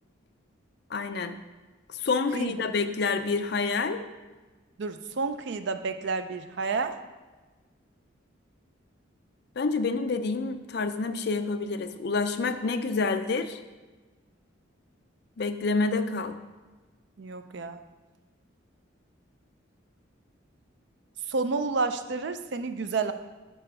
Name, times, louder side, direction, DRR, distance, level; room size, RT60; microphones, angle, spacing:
voice 1, 0.9-1.4 2.0-4.0 9.6-13.6 15.4-16.4, left 4 dB, 55° left, 9 dB, 0.5 m, -28 dB
voice 2, 4.8-7.0 17.2-17.8 21.3-23.1, right 4 dB, 60° right, 9 dB, 0.4 m, -30 dB
7.0 x 4.2 x 5.6 m, 1.2 s
head